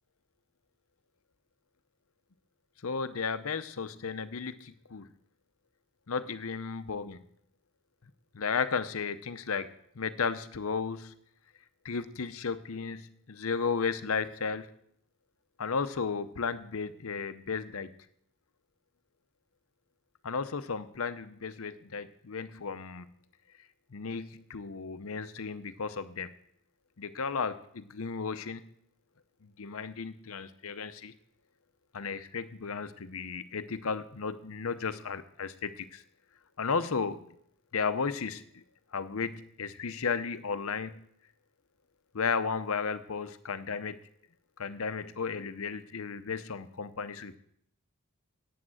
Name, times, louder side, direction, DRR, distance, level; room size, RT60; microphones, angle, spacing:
voice 1, 2.8-5.1 6.1-7.2 8.3-9.7 9.9-11.1 11.8-14.7 15.6-17.9 20.2-23.1 23.9-26.3 27.0-28.7 29.4-31.1 31.9-36.0 36.6-37.3 37.7-38.6 38.9-41.0 42.1-44.0 44.6-47.4, left 5 dB, 70° left, 12 dB, 0.7 m, -34 dB
8.6 x 8.5 x 7.8 m, 0.69 s
head